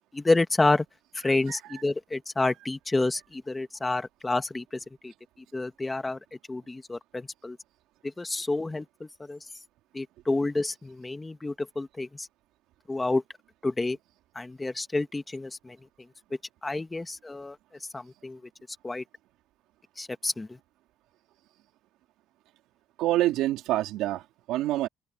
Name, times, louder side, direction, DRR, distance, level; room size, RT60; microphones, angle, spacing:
voice 1, 0.1-0.8 1.1-5.1 5.5-6.2 6.5-7.6 8.0-9.4 9.9-12.3 12.9-13.2 13.6-14.0 14.3-15.8 16.6-17.5 17.9-18.4 18.8-19.0 20.0-20.6, left 2 dB, 15° left, 1.7 m, -29 dB
voice 2, 23.0-24.9, right 15 dB, 85° right, 3.2 m, -26 dB
open air
cardioid pair, 100°, 0 cm